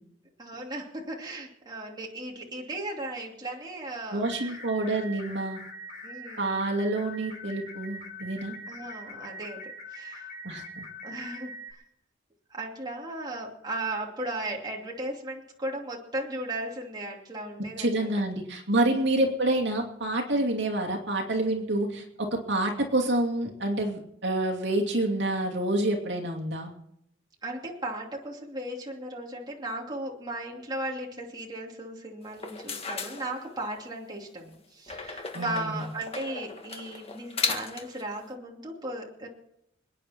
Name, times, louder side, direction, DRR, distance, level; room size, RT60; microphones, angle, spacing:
voice 1, 0.4-4.5 6.0-6.7 8.7-10.4 11.0-11.8 12.5-18.1 18.8-19.0 20.3-20.4 27.4-39.3, right 1 dB, 20° right, -2 dB, 2.8 m, -36 dB
voice 2, 4.1-5.6 6.4-8.5 10.4-10.8 17.8-26.7 35.3-35.9, right 1 dB, 60° right, 1 dB, 2.6 m, -28 dB
sound 1, 4.2-11.7, equal, 45° left, 5.3 m, -43 dB
sound 2, 32.3-33.9 34.9-38.0, left 4 dB, 30° left, 1.6 m, -35 dB
28.5 x 9.6 x 4.4 m, 0.77 s
head